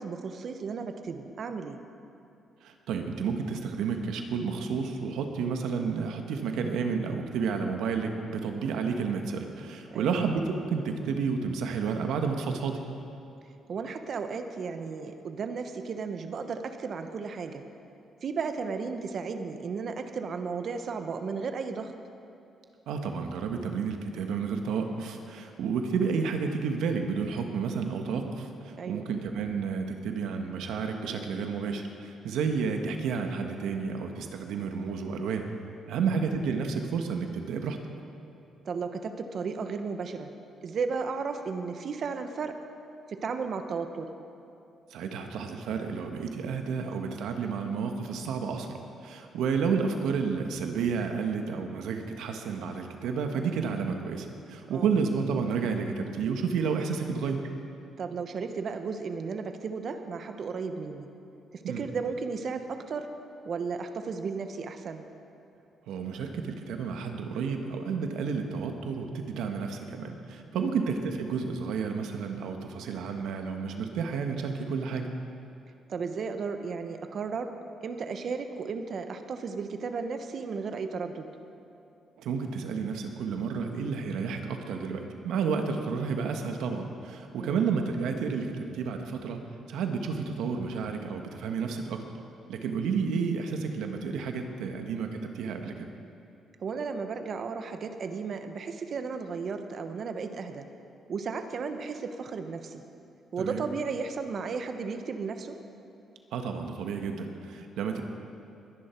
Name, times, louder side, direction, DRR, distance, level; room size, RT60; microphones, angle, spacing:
voice 1, 0.0-1.8 9.9-10.2 13.7-17.6 18.2-21.9 28.8-29.1 35.9-36.2 38.6-40.3 40.6-42.6 43.1-44.1 54.6-54.9 58.0-61.1 61.5-63.1 63.4-65.1 70.5-70.8 75.9-77.6 77.8-81.3 87.4-87.7 96.6-100.7 101.1-102.8 103.3-105.6, right 5 dB, 55° right, 7 dB, 1.1 m, -34 dB
voice 2, 2.6-12.8 22.9-35.5 35.9-37.8 44.9-57.4 61.6-61.9 65.9-75.1 82.2-89.4 89.7-92.0 92.5-95.9 103.4-103.6 106.3-108.0, right 5 dB, 85° right, 5 dB, 1.4 m, -31 dB
21.0 x 10.5 x 4.6 m, 2.7 s
cardioid pair, 90°, 0 cm